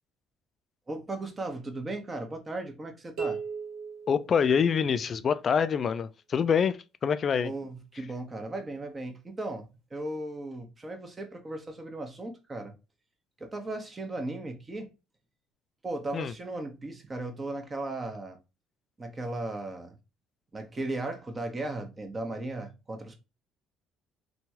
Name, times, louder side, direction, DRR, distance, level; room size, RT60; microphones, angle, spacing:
voice 1, 0.9-3.4 7.4-12.7 13.4-14.9 15.8-18.4 19.0-20.0 20.5-23.2, right 2 dB, 25° right, 0.9 m, -36 dB
sound 1, 3.2-5.1, right 5 dB, 75° right, 1.2 m, -37 dB
voice 2, 4.1-7.5 16.1-16.3, left 7 dB, 45° left, 0.3 m, -26 dB
2.9 x 2.3 x 2.8 m
supercardioid pair, 85°, 0 cm